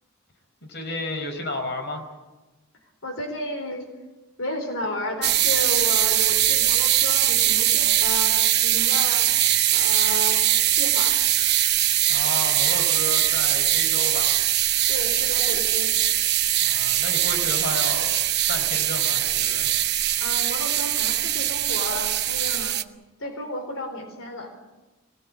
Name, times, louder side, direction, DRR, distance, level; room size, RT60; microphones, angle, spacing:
voice 1, 0.6-2.0 12.1-14.4 16.6-18.2 18.5-19.7, left 2 dB, 55° left, 5 dB, 4.6 m, -32 dB
voice 2, 3.0-3.9 4.4-9.3 9.7-10.4 10.8-11.1 14.9-15.9 20.2-22.8 23.2-24.5, left 1 dB, 80° left, 5 dB, 4.1 m, -32 dB
sound 1, 5.2-22.8, right 13 dB, 55° right, 1.0 m, -21 dB
25.0 x 19.0 x 8.8 m, 1.1 s
head